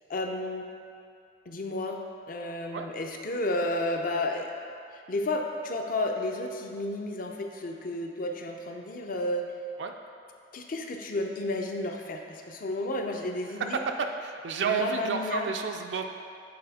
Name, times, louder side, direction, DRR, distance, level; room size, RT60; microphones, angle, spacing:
voice 1, 0.1-0.6 1.5-2.0 2.3-4.5 4.9-9.5 10.5-13.8 14.6-15.5, left 2 dB, 50° left, 3 dB, 0.6 m, -32 dB
voice 2, 13.7-16.0, right 5 dB, 75° right, 4 dB, 0.4 m, -30 dB
7.7 x 4.2 x 4.1 m, 2.4 s
head